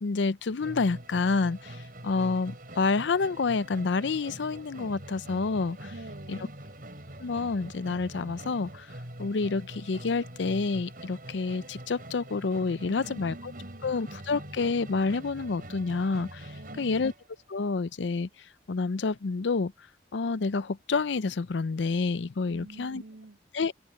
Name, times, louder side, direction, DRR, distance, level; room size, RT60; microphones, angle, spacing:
voice 1, 0.0-5.9 6.3-6.4 7.2-8.9 9.2-13.5 13.8-17.1 17.5-18.3 18.7-19.7 20.1-23.0 23.5-23.8, left 4 dB, 75° left, 0.5 m, -28 dB
Musical instrument, 0.6-17.3, right 1 dB, 50° right, 5.9 m, -44 dB
voice 2, 5.9-6.5 12.8-13.9 16.5-17.0 22.5-23.4, right 2 dB, 80° right, 2.9 m, -47 dB
head